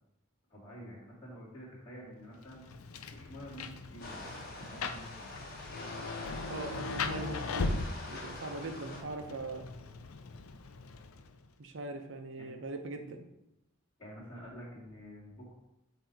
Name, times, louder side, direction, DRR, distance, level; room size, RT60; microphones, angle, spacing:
voice 1, 0.5-2.6 3.1-4.3 4.6-5.3 12.4-12.5 14.0-15.5, equal, 25° left, -8 dB, 2.0 m, -48 dB
Rain, 2.4-11.5, left 3 dB, 85° left, 0.5 m, -39 dB
sound 1, 4.0-9.0, left 2 dB, 45° left, 1.3 m, -45 dB
voice 2, 6.5-7.8 8.1-9.7 11.6-13.2, right 2 dB, 60° right, 5 dB, 0.7 m, -41 dB
7.7 x 2.8 x 4.6 m, 0.89 s
head